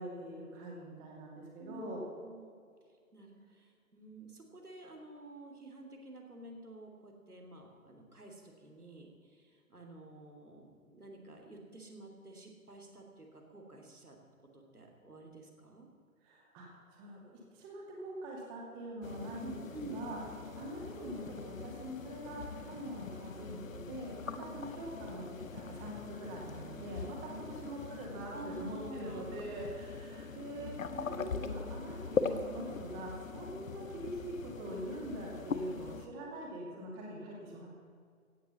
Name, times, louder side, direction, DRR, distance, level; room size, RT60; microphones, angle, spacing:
voice 1, 0.0-2.0 16.2-19.6 19.9-20.2 20.5-30.7 31.0-37.7, right 1 dB, 20° right, -2 dB, 2.4 m, -43 dB
voice 2, 1.6-2.5 3.1-14.2 14.5-15.9 19.4-20.1 24.3-24.6 27.3-27.4 28.3-29.4 30.9-31.6, right 2 dB, 85° right, 1 dB, 3.1 m, -50 dB
sound 1, 19.0-36.1, left 5 dB, 60° left, 1.1 m, -42 dB
16.0 x 8.3 x 7.2 m, 2.2 s
figure-of-eight pair, 135°, 44 cm